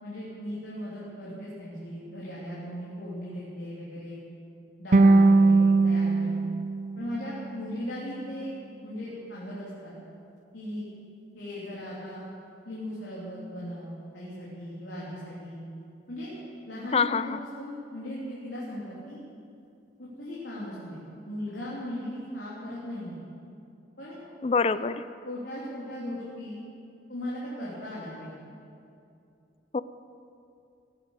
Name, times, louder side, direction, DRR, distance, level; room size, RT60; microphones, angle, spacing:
voice 1, 0.0-4.2 4.8-6.5 7.0-8.5 8.8-9.9 10.5-10.9 11.3-12.2 12.6-15.6 16.1-16.3 16.7-19.2 20.0-21.0 21.2-23.2 24.0-24.2 24.7-24.8 25.2-26.6 27.1-28.3, left 1 dB, 85° left, -8 dB, 3.2 m, -38 dB
sound 1, 4.9-8.0, right 3 dB, 45° right, 0.5 m, -21 dB
voice 2, 16.9-17.4 24.4-25.0 29.7-29.8, left 5 dB, 35° left, 15 dB, 0.4 m, -25 dB
17.5 x 8.2 x 8.1 m, 2.6 s
head